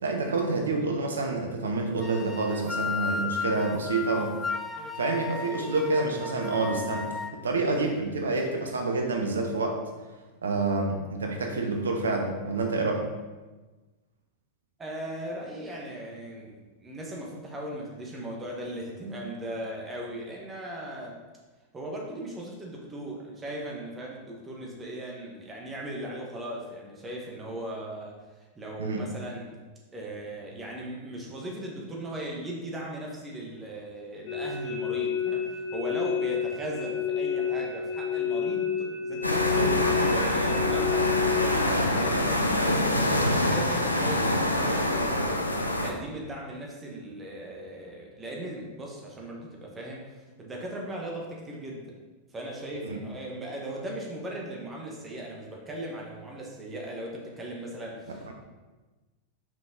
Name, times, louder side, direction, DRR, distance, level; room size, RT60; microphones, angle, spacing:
voice 1, 0.0-4.4 5.0-9.8 10.4-13.0 28.8-29.0 52.8-53.0 58.3-58.4, right 3 dB, 70° right, 3 dB, 1.0 m, -28 dB
sound 1, 2.0-7.3, left 5 dB, 10° left, 0.5 m, -34 dB
voice 2, 14.8-21.1 21.7-28.1 28.5-29.5 29.9-45.4 45.8-51.9 52.3-58.3, right 1 dB, 20° right, -2 dB, 1.5 m, -38 dB
sound 2, 34.3-41.5, left 7 dB, 45° left, 1.2 m, -29 dB
sound 3, 39.2-45.9, left 1 dB, 85° left, 0.6 m, -25 dB
5.9 x 5.0 x 3.8 m, 1.2 s
figure-of-eight pair, 90°, 0 cm